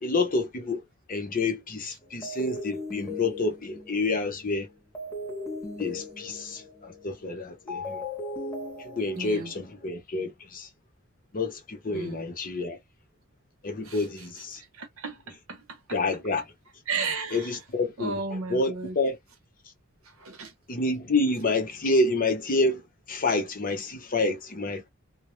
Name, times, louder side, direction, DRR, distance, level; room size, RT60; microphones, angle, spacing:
voice 1, 0.0-4.7 5.8-8.0 8.8-10.7 11.3-12.8 13.6-14.6 15.9-16.5 17.3-19.2 20.7-24.8, left 2 dB, 40° left, 0.7 m, -28 dB
sound 1, 2.2-9.9, left 2 dB, 15° left, 0.9 m, -38 dB
voice 2, 9.2-9.5 11.9-12.3 14.8-15.6 16.9-17.4 18.0-18.9 20.2-20.5, right 4 dB, 75° right, 0.8 m, -33 dB
2.1 x 2.1 x 3.1 m
head